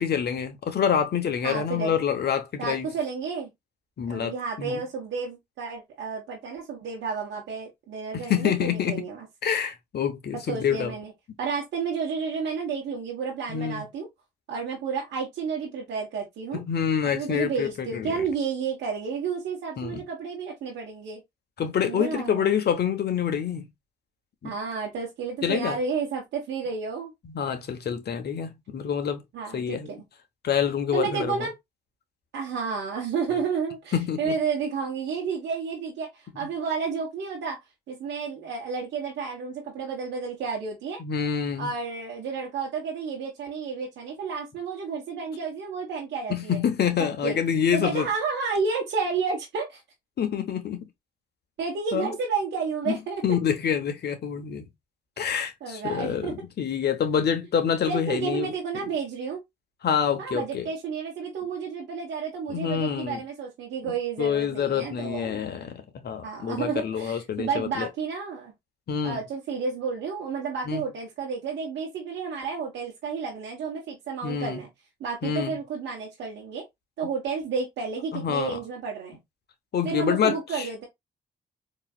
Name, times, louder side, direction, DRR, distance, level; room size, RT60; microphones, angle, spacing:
voice 1, 0.0-2.9 4.0-4.8 8.1-9.0 9.4-10.9 13.5-13.8 16.5-18.1 19.8-20.0 21.6-23.7 24.4-24.5 25.4-25.8 27.2-29.2 29.5-29.9 30.4-31.5 33.9-34.3 36.4-36.5 41.0-41.7 46.3-48.1 50.2-50.9 51.9-52.1 52.9-54.7 55.2-58.5 59.8-60.7 62.5-63.2 63.8-63.9 64.2-67.9 68.9-69.2 70.6-70.8 74.2-74.6 75.2-75.5 78.1-78.6 79.7-80.7, left 8 dB, 60° left, 1.0 m, -27 dB
voice 2, 1.4-2.0 2.6-3.5 4.1-9.3 10.5-11.1 11.4-14.1 14.5-16.6 17.1-21.2 21.8-22.6 24.4-27.1 29.3-30.0 30.9-31.5 32.3-37.6 37.9-41.0 41.6-46.6 47.2-47.3 47.7-49.8 51.6-53.2 55.6-56.3 57.9-59.4 60.2-65.4 66.2-68.5 69.0-74.7 75.0-76.6 77.0-79.2 79.8-80.8, right 5 dB, 75° right, 1.2 m, -31 dB
3.9 x 3.0 x 2.3 m
supercardioid pair, 55°, 19 cm